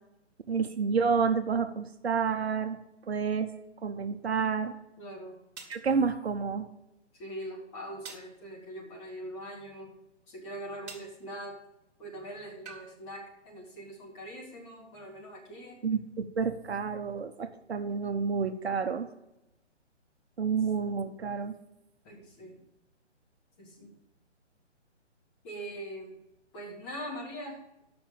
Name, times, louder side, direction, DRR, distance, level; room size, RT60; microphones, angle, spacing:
voice 1, 0.5-2.8 3.1-3.5 3.8-4.7 5.7-6.7 15.8-19.1 20.4-21.5, right 5 dB, 60° right, 7 dB, 0.9 m, -29 dB
voice 2, 5.0-5.4 7.1-9.9 10.3-11.6 12.0-15.8 22.0-22.5 23.6-23.9 25.4-26.1 26.5-27.6, right 1 dB, 25° left, -1 dB, 2.0 m, -42 dB
sound 1, 5.6-5.9 8.1-8.4 10.9-11.2 12.7-12.9, right 5 dB, 35° right, 2.0 m, -45 dB
7.1 x 6.0 x 7.1 m, 0.89 s
figure-of-eight pair, 140°, 36 cm